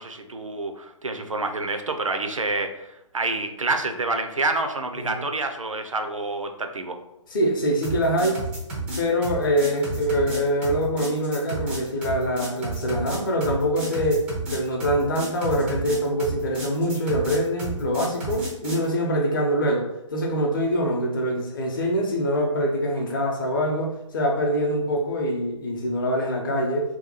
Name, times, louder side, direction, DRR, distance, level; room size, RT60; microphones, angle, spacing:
voice 1, 0.0-7.0, right 3 dB, 85° right, 6 dB, 0.5 m, -28 dB
voice 2, 7.3-8.4 9.0-27.0, equal, 40° left, 0 dB, 0.6 m, -24 dB
sound 1, 7.8-18.9, right 2 dB, 5° right, 0.3 m, -32 dB
2.8 x 2.2 x 3.9 m, 0.89 s
figure-of-eight pair, 135°, 16 cm